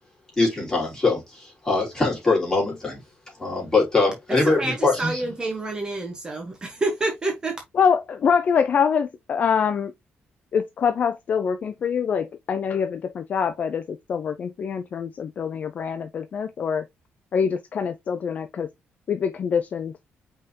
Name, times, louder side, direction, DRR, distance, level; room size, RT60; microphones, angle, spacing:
voice 1, 0.4-3.0 3.4-5.2, left 3 dB, 15° left, 3.1 m, -22 dB
voice 2, 4.3-7.6, right 2 dB, 20° right, 1.0 m, -28 dB
voice 3, 7.7-9.9 10.5-16.8 17.3-18.7 19.1-19.9, left 6 dB, 40° left, 0.4 m, -24 dB
5.4 x 3.6 x 2.7 m
cardioid pair, 165°, 4 cm